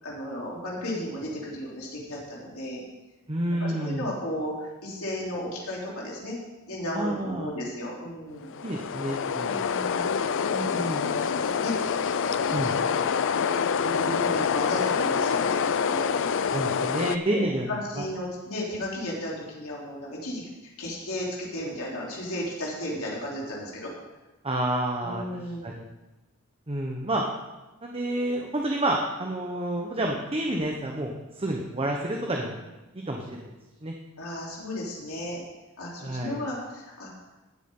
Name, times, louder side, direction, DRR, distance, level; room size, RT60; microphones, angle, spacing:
voice 1, 0.0-2.8 3.6-6.4 6.7-8.5 9.5-10.2 10.8-11.7 12.2-12.9 13.8-16.2 17.3-23.9 25.0-25.7 34.2-35.4 35.8-37.1, left 1 dB, 75° left, -4 dB, 3.6 m, -34 dB
voice 2, 3.3-4.1 6.9-7.5 8.6-9.5 10.5-11.0 12.5-12.7 16.5-17.7 18.0-18.1 24.4-25.8 26.7-27.2 27.8-32.6 33.1-33.5 33.8-33.9 36.0-36.4, right 1 dB, 25° right, 0 dB, 1.1 m, -29 dB
sound 1, 8.5-17.2, left 6 dB, 60° left, 0.5 m, -26 dB
18.5 x 8.3 x 3.8 m, 1.1 s
head